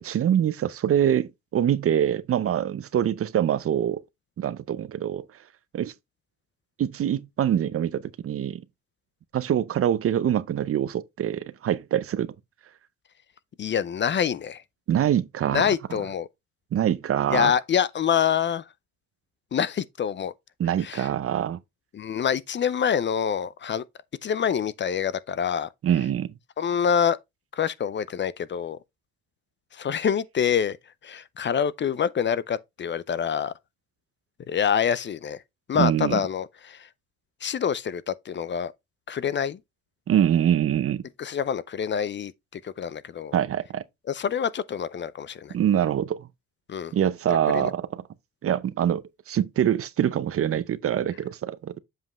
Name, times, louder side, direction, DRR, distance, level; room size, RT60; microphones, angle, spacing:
voice 1, 0.0-4.0 4.4-5.2 5.7-5.9 6.8-8.6 9.3-12.3 14.9-16.0 16.7-17.5 20.6-21.6 25.8-26.3 35.7-36.2 40.1-41.0 43.3-43.8 45.5-46.3 46.9-47.9 48.4-51.7, right 10 dB, 50° right, 0.6 m, -24 dB
voice 2, 13.6-14.6 15.5-16.3 17.3-18.6 19.5-20.3 20.8-21.1 21.9-23.8 24.2-25.7 26.6-27.2 27.6-28.8 29.7-30.8 31.0-33.5 34.5-35.4 35.7-36.9 37.4-38.7 39.1-39.6 41.2-43.4 44.1-45.5 46.7-46.9 47.5-47.7, left 8 dB, 40° left, 0.5 m, -26 dB
7.6 x 5.2 x 3.1 m
cardioid pair, 90°, 30 cm